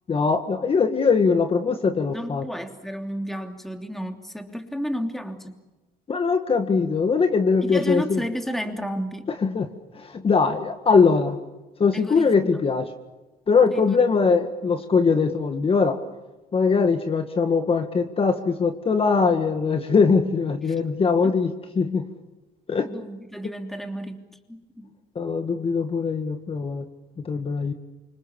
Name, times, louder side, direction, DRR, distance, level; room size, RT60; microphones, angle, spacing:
voice 1, 0.1-2.4 6.1-8.2 9.4-9.7 9.9-11.4 11.8-12.9 13.5-16.0 16.5-22.1 22.7-22.9 25.2-26.9 27.3-27.7, left 5 dB, 35° left, 7 dB, 1.9 m, -21 dB
voice 2, 2.1-5.6 7.6-9.3 11.9-12.3 13.7-14.0 20.7-20.8 21.2-21.3 22.8-24.2 24.5-24.9, equal, ahead, 5 dB, 3.1 m, -32 dB
28.5 x 25.5 x 7.1 m, 1.1 s
cardioid pair, 110°, 17 cm